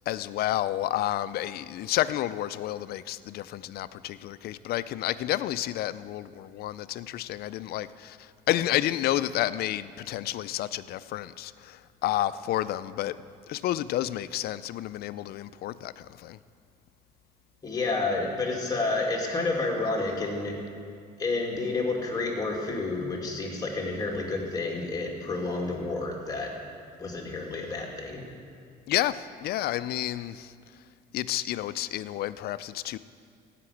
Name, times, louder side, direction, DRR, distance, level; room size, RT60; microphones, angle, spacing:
voice 1, 0.1-13.2 13.5-16.4 28.9-30.5 31.1-33.0, left 13 dB, 65° left, 15 dB, 0.4 m, -30 dB
voice 2, 17.6-20.6 21.2-26.5 27.0-28.2, left 3 dB, 20° left, -1 dB, 2.5 m, -30 dB
15.5 x 5.9 x 8.5 m, 2.2 s
cardioid pair, 110°, 17 cm